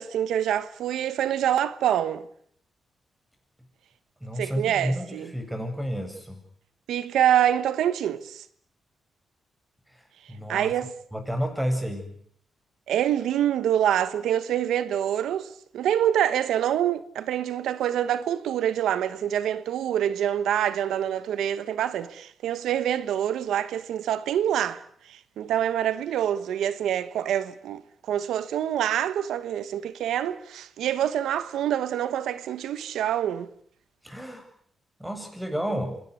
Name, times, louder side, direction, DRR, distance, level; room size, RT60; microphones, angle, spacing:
voice 1, 0.0-2.3 4.4-5.3 6.9-8.4 10.5-10.9 12.9-33.5, right 10 dB, 90° right, 1.2 m, -26 dB
voice 2, 4.2-6.4 9.9-10.7 11.1-12.1 34.0-34.4 35.0-36.0, equal, 5° right, 8.0 m, -31 dB
25.5 x 19.5 x 9.8 m
cardioid pair, 90°, 0 cm